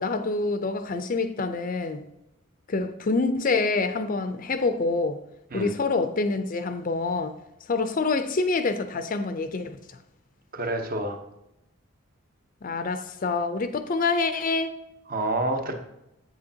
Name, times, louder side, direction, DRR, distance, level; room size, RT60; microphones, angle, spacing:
voice 1, 0.0-2.1 2.7-5.2 5.5-7.3 7.7-9.8 12.6-14.7, left 3 dB, 40° left, 0.5 m, -26 dB
voice 2, 10.5-11.2 15.1-15.7, right 2 dB, 45° right, 0.9 m, -28 dB
7.9 x 7.7 x 2.8 m
head